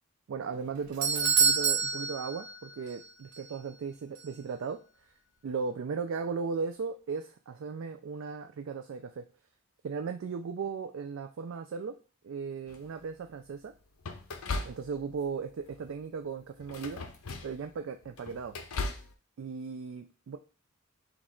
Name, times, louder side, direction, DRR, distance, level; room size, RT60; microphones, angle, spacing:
voice 1, 0.3-4.8 5.4-9.2 9.8-12.0 12.2-13.7 14.7-17.0 17.4-18.6 19.4-20.4, right 5 dB, 60° right, 6 dB, 0.3 m, -36 dB
Doorbell, 0.5-3.1 3.3-3.4 4.2-4.3, right 5 dB, 90° right, 0.8 m, -27 dB
sound 1, 12.7-13.1 14.0-15.3 15.6-16.0 16.6-17.7 18.0-19.1, left 3 dB, 80° left, 0.6 m, -38 dB
6.0 x 2.4 x 3.7 m, 0.36 s
head